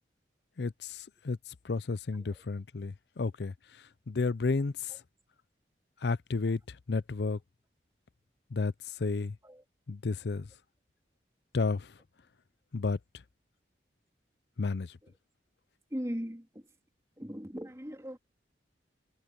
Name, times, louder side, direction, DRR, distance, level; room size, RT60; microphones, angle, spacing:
voice 1, 0.6-5.0 6.0-7.4 8.5-9.4 9.9-10.5 11.5-12.0 12.7-13.0 14.6-15.0, left 4 dB, 70° left, 0.6 m, -32 dB
voice 2, 15.9-16.7 17.2-18.2, equal, 15° right, 3.4 m, -39 dB
head